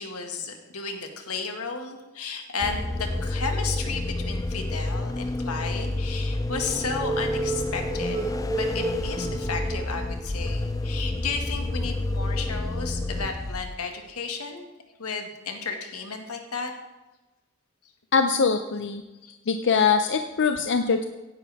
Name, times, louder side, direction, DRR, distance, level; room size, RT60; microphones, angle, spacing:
voice 1, 0.0-8.2 8.5-14.7 15.0-16.7 19.2-19.4, left 4 dB, 90° left, 4 dB, 1.9 m, -33 dB
sound 1, 2.6-13.9, left 2 dB, 15° left, 0.4 m, -29 dB
sound 2, 6.5-10.3 10.8-10.9 11.4-11.5, right 3 dB, 30° right, 1.6 m, -33 dB
voice 2, 18.1-19.0 19.5-21.0, left 5 dB, 55° left, 7 dB, 0.6 m, -22 dB
16.5 x 10.5 x 3.5 m, 1.1 s
head